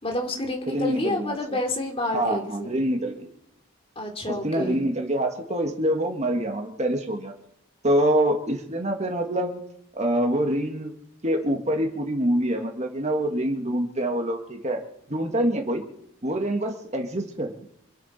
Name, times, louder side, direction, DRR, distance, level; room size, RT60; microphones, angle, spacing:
voice 1, 0.0-2.7 4.0-4.8, left 1 dB, 25° left, 2 dB, 2.7 m, -29 dB
voice 2, 0.7-1.4 2.1-3.3 4.3-7.3 7.8-9.6 9.9-10.9 11.2-14.8 15.1-15.8 16.2-17.6, right 1 dB, 30° right, 3 dB, 1.9 m, -25 dB
27.0 x 9.2 x 4.4 m, 0.76 s
head